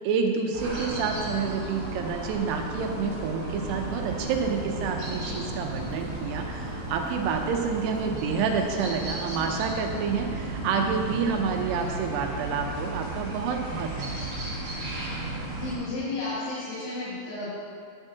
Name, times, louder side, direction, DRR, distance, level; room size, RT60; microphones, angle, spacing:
voice 1, 0.0-14.2, right 5 dB, 85° right, 4 dB, 2.7 m, -29 dB
sound 1, 0.5-15.8, right 2 dB, 50° right, 1.9 m, -34 dB
Fire, 3.6-9.1, right 1 dB, 30° right, 1.3 m, -44 dB
voice 2, 15.5-17.5, left 2 dB, 75° left, -12 dB, 4.1 m, -33 dB
10.5 x 7.0 x 2.8 m, 2.3 s
omnidirectional pair, 4.8 m